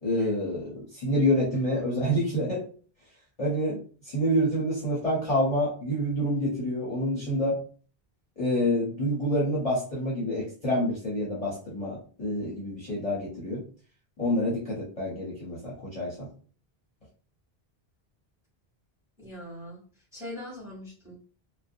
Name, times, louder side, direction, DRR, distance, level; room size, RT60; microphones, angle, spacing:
voice 1, 0.0-2.6 3.4-7.6 8.4-13.6 14.2-16.3, equal, 40° left, -6 dB, 0.8 m, -27 dB
voice 2, 19.2-19.8 20.1-21.2, left 1 dB, 5° right, -4 dB, 1.1 m, -41 dB
2.6 x 2.1 x 2.5 m, 0.40 s
omnidirectional pair, 1.0 m